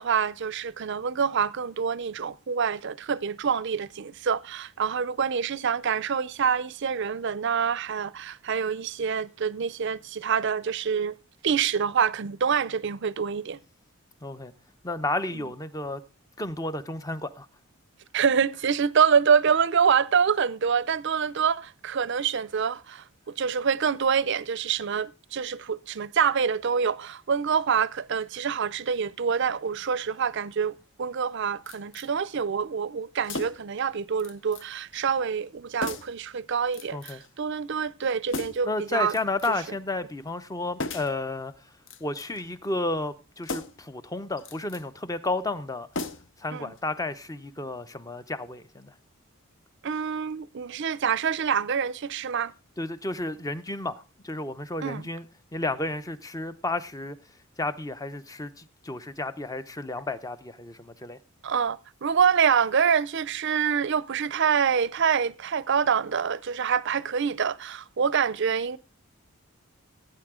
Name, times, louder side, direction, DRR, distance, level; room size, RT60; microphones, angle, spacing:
voice 1, 0.0-11.1 11.4-13.6 15.3-15.4 18.1-39.1 46.5-46.7 49.8-52.5 54.8-55.0 61.4-68.8, right 6 dB, 55° right, 0.5 m, -26 dB
voice 2, 14.2-14.5 14.8-16.0 16.4-17.5 36.9-37.2 38.7-41.5 42.0-45.9 46.4-48.9 52.8-55.3 55.5-57.2 57.6-61.2, left 2 dB, 15° left, 0.6 m, -32 dB
sound 1, 31.7-32.1 33.2-33.8 34.2-34.7 34.9-35.1 35.8-36.2 36.7-37.3 38.3-38.7 39.1-39.7 40.8-41.2 41.8-42.5 43.4-43.9 44.4-44.8 45.9-46.5 46.8-46.9, left 3 dB, 60° left, 0.8 m, -36 dB
16.5 x 8.7 x 3.7 m
head